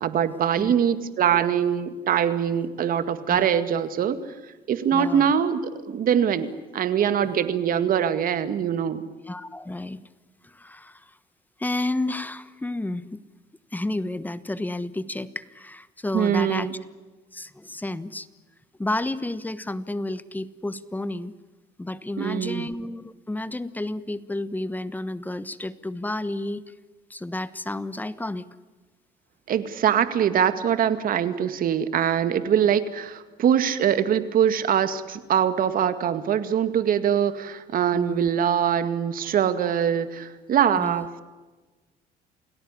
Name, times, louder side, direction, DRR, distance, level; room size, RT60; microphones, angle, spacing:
voice 1, 0.0-4.2 4.7-9.0 16.1-16.7 22.2-22.7 29.5-41.2, right 8 dB, 55° right, 11 dB, 2.1 m, -23 dB
voice 2, 4.9-5.3 9.3-10.0 10.4-11.2 11.6-13.3 13.7-16.7 17.3-18.3 18.8-21.3 21.8-26.7 27.1-28.5 37.9-38.3 40.8-41.1, left 2 dB, 10° left, 15 dB, 1.2 m, -31 dB
29.0 x 18.5 x 9.9 m, 1.2 s
cardioid pair, 110°, 17 cm